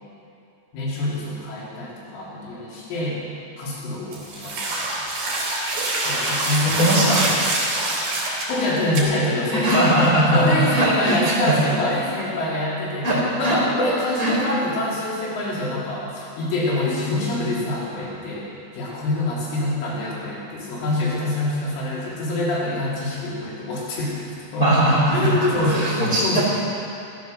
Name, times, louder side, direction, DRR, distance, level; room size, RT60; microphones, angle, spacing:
voice 1, 0.7-3.2 3.6-5.0 6.1-7.4 8.5-18.5 18.7-24.7 25.1-26.4, left 1 dB, 75° left, -6 dB, 5.8 m, -25 dB
sound 1, 4.1-8.5 8.9-9.0, right 2 dB, 50° right, 4.4 m, -25 dB
voice 2, 6.6-7.2 9.5-11.5 13.0-13.6 14.2-14.4 24.6-26.4, right 1 dB, 25° left, -7 dB, 2.5 m, -20 dB
15.0 x 13.0 x 6.7 m, 2.7 s
omnidirectional pair, 5.7 m